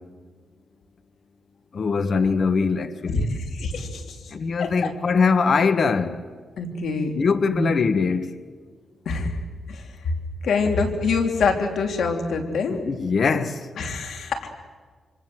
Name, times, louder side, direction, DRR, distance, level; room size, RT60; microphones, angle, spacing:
voice 1, 1.7-3.3 4.3-6.1 7.1-8.3 12.7-13.5, left 5 dB, 50° left, 1.5 m, -22 dB
voice 2, 3.1-4.0 4.6-4.9 6.6-7.1 7.5-7.7 9.0-9.4 9.7-9.8 10.4-12.8 13.8-14.5, left 4 dB, 80° left, 3.3 m, -25 dB
26.0 x 25.5 x 8.1 m
cardioid pair, 110°, 0 cm